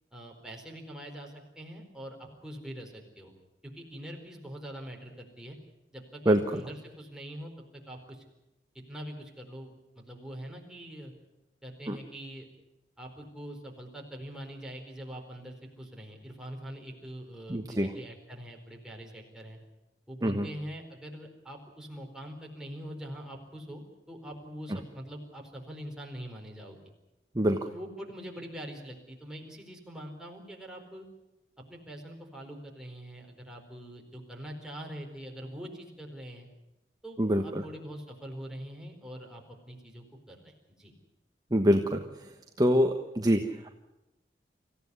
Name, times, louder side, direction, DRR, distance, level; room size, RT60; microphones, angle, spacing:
voice 1, 0.1-3.3 3.6-5.6 5.9-8.2 8.9-9.7 10.1-11.1 11.6-12.5 13.0-19.6 20.1-26.8 27.7-31.1 31.6-36.5 37.0-40.9, equal, 5° right, 0 dB, 4.4 m, -43 dB
voice 2, 6.2-6.6 11.9-12.0 17.5-17.9 20.2-20.5 27.3-27.7 37.2-37.7 41.5-42.0 42.6-43.7, equal, 20° right, 4 dB, 1.2 m, -25 dB
25.5 x 15.5 x 9.7 m, 0.96 s
head